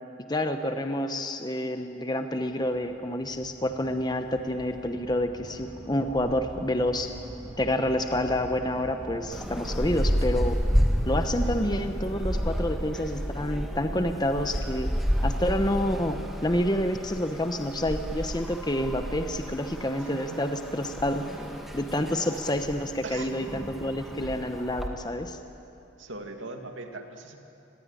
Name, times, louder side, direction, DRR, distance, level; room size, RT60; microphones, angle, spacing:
voice 1, 0.3-7.1 7.6-10.6 11.1-14.9 15.2-21.3 21.7-25.4, left 1 dB, 20° left, 7 dB, 1.0 m, -28 dB
sound 1, 2.5-10.5, equal, 20° right, 2.0 m, -43 dB
sound 2, 9.3-24.9, equal, ahead, 2.0 m, -31 dB
voice 2, 20.0-20.4 21.2-21.4 23.0-23.3 26.0-27.4, right 3 dB, 70° right, 4 dB, 2.4 m, -40 dB
25.5 x 20.5 x 9.9 m, 2.8 s
head